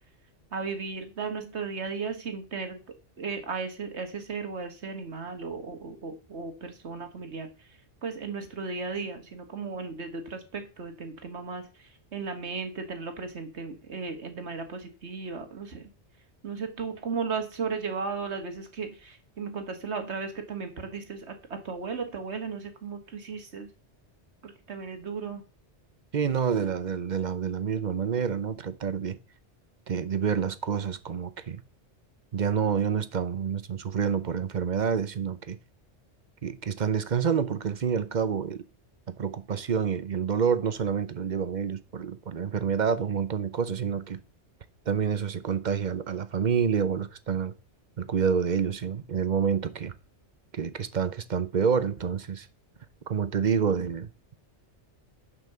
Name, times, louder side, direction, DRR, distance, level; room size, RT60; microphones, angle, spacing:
voice 1, 0.5-2.8 3.2-7.7 8.0-15.8 16.4-23.7 24.4-25.4, right 5 dB, 70° right, 1.8 m, -35 dB
voice 2, 26.1-29.2 29.9-31.6 32.3-35.6 36.4-38.6 39.2-44.2 44.9-47.5 48.0-49.9 50.5-52.5 53.1-54.1, right 7 dB, 45° right, 0.8 m, -28 dB
9.2 x 5.7 x 6.7 m
omnidirectional pair, 1.2 m